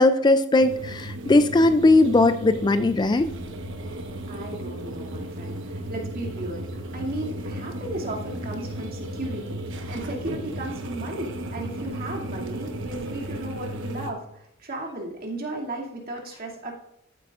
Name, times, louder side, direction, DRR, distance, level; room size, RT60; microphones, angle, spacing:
voice 1, 0.0-3.3, left 2 dB, 20° left, 11 dB, 0.3 m, -19 dB
sound 1, 0.6-14.1, right 1 dB, 65° right, 1.1 m, -34 dB
voice 2, 4.3-16.7, right 1 dB, 45° right, -2 dB, 2.4 m, -35 dB
14.5 x 8.5 x 2.5 m, 0.84 s
head